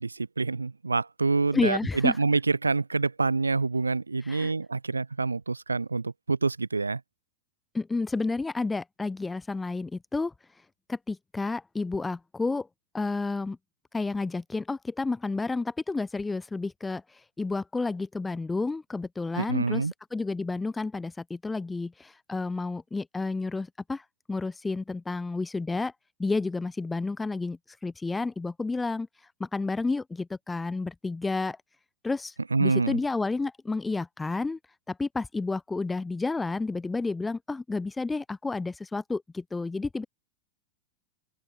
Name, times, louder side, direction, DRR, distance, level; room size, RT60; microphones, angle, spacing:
voice 1, 0.0-7.0 19.4-19.9 32.5-33.0, right 3 dB, 80° right, 0.5 m, -27 dB
voice 2, 1.5-2.2 4.2-4.5 7.7-10.3 10.9-12.7 12.9-13.6 13.9-19.8 20.1-25.9 26.2-29.1 29.4-31.6 32.0-32.3 32.6-34.6 34.9-40.0, left 3 dB, 10° left, 0.5 m, -31 dB
open air
figure-of-eight pair, 90°, 0 cm